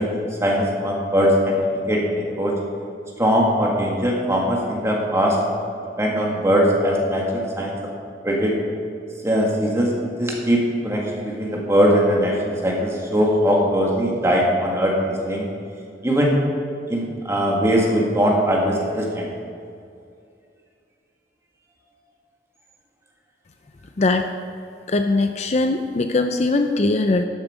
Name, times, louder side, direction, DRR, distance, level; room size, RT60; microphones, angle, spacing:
voice 1, 0.0-1.6 1.9-2.5 3.2-5.4 6.0-7.7 8.3-8.5 9.2-9.9 10.2-14.9 15.2-15.5 16.0-16.4 16.9-19.2, equal, 15° right, -2 dB, 1.8 m, -20 dB
voice 2, 24.0-24.3 24.9-27.2, left 2 dB, 40° left, 7 dB, 0.4 m, -20 dB
11.5 x 8.3 x 5.0 m, 2.4 s
head